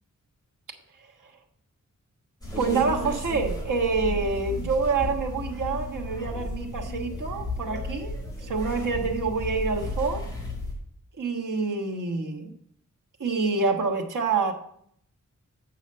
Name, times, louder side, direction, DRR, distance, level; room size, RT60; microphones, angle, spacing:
sound 1, 2.4-10.7, left 1 dB, 10° left, 4.2 m, -33 dB
voice 1, 2.6-10.3 11.1-12.5 13.2-14.5, right 4 dB, 80° right, 0 dB, 1.3 m, -27 dB
8.2 x 6.4 x 5.4 m, 0.68 s
wide cardioid pair, 110°, 31 cm